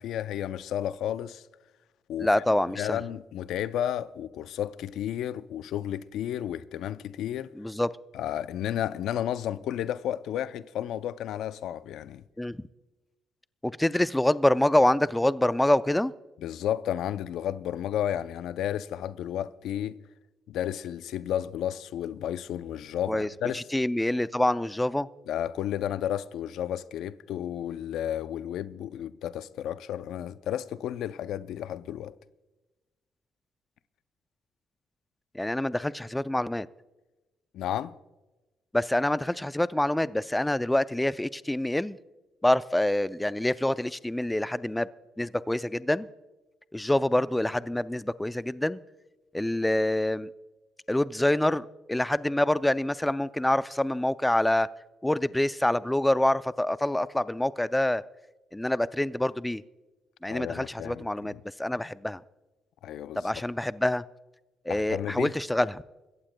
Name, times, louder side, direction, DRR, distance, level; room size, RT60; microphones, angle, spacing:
voice 1, 0.0-1.4 2.1-2.3 2.8-7.5 8.1-12.2 16.4-20.0 20.5-23.6 25.3-32.1 37.5-37.9 60.3-61.4 62.8-63.3 64.7-65.3, left 10 dB, 80° left, 0.4 m, -32 dB
voice 2, 2.2-3.0 7.6-7.9 12.4-12.6 13.6-16.1 23.1-25.1 35.3-36.7 38.7-42.0 42.4-44.9 45.2-46.1 46.7-48.8 49.3-50.3 50.9-54.7 55.0-58.0 58.5-59.6 60.2-62.2 63.2-64.0 64.7-65.8, left 1 dB, 10° left, 0.3 m, -26 dB
24.5 x 15.0 x 2.2 m
cardioid pair, 90°, 0 cm